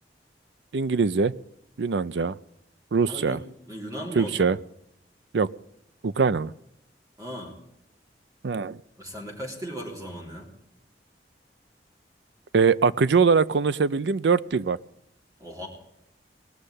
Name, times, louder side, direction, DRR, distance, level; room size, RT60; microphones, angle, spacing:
voice 1, 0.7-1.3 1.8-2.4 2.9-3.4 4.2-4.6 5.3-5.5 6.0-6.5 8.4-8.8 12.5-14.8, right 5 dB, 75° right, 16 dB, 0.5 m, -22 dB
voice 2, 3.0-3.4 3.7-4.5 7.2-7.5 9.0-10.5 15.4-15.7, equal, 20° right, 0 dB, 3.3 m, -37 dB
19.0 x 6.6 x 9.9 m, 0.82 s
head